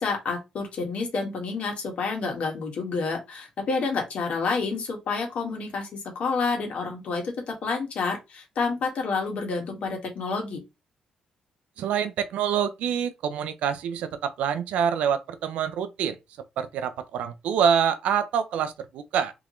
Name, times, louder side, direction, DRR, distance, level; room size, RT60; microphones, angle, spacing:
voice 1, 0.0-10.6, left 4 dB, 70° left, 1.7 m, -29 dB
voice 2, 11.8-16.2 16.6-19.3, right 8 dB, 85° right, 0.5 m, -26 dB
3.5 x 3.0 x 3.0 m
cardioid pair, 75°, 2 cm